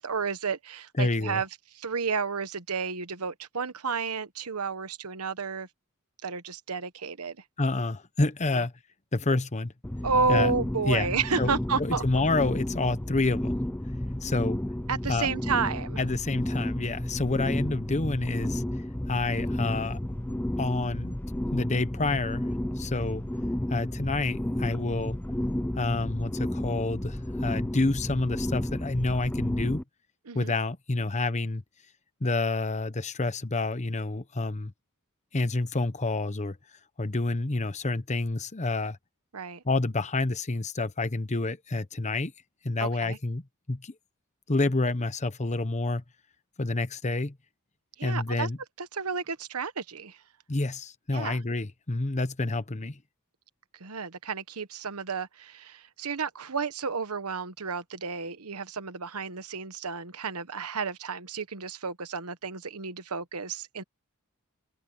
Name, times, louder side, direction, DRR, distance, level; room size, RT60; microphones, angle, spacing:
voice 1, 0.0-1.5 1.7-5.7 6.2-7.4 8.5-8.6 10.0-12.0 14.9-16.0 30.3-30.5 39.3-39.6 42.8-43.2 48.0-48.5 48.8-50.2 51.1-51.4 53.8-63.8, right 5 dB, 85° right, 1.2 m, -31 dB
voice 2, 1.0-1.4 7.6-8.7 9.1-9.7 10.3-10.5 10.9-11.1 11.4-11.5 11.8-13.6 14.2-14.6 15.1-15.3 16.0-18.6 19.1-20.0 20.6-21.1 21.5-22.5 22.8-23.2 23.7-25.2 25.8-29.8 30.3-31.6 32.2-34.7 35.3-36.6 37.0-39.0 39.6-42.3 42.6-43.9 44.5-46.0 46.6-47.4 48.0-48.6 50.5-53.0, left 2 dB, 30° left, 1.0 m, -28 dB
sound 1, 9.8-29.8, left 1 dB, 10° left, 0.5 m, -32 dB
head